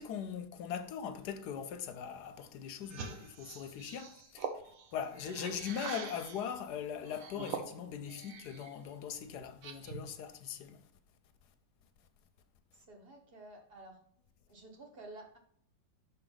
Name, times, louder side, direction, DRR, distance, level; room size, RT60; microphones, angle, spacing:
voice 1, 0.0-4.5 4.9-10.8, left 8 dB, 70° left, 1.1 m, -40 dB
sound 1, 2.8-6.5 7.0-8.7 9.1-10.1, right 6 dB, 60° right, 1.0 m, -44 dB
voice 2, 12.7-14.0 14.5-15.4, right 2 dB, 35° right, 1.2 m, -52 dB
6.2 x 4.6 x 3.9 m
omnidirectional pair, 2.0 m